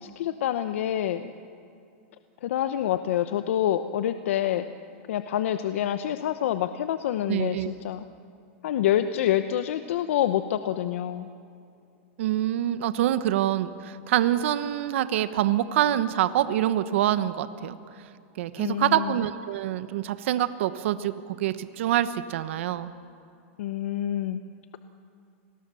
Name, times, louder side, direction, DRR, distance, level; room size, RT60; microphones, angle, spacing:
voice 1, 0.0-1.3 2.4-4.7 5.1-8.1 8.6-11.3 18.6-19.2 23.6-24.4, left 11 dB, 70° left, 10 dB, 1.0 m, -27 dB
voice 2, 7.3-7.7 12.2-17.8 18.4-22.9, right 12 dB, 65° right, 12 dB, 1.1 m, -25 dB
29.5 x 20.5 x 7.0 m, 2.5 s
supercardioid pair, 150°, 7 cm